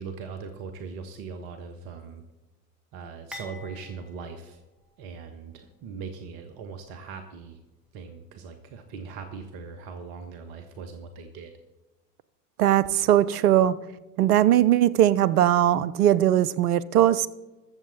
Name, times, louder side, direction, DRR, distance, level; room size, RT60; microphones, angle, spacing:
voice 1, 0.0-2.2 2.9-4.6 5.0-7.6 7.9-11.5, right 5 dB, 50° right, 7 dB, 1.4 m, -40 dB
sound 1, 3.3-5.5 5.8-6.0 6.9-7.0, left 2 dB, ahead, 2.7 m, -47 dB
voice 2, 12.6-13.8 14.2-17.3, right 12 dB, 65° right, 19 dB, 0.8 m, -20 dB
22.0 x 7.4 x 4.1 m, 1.1 s
figure-of-eight pair, 80°, 49 cm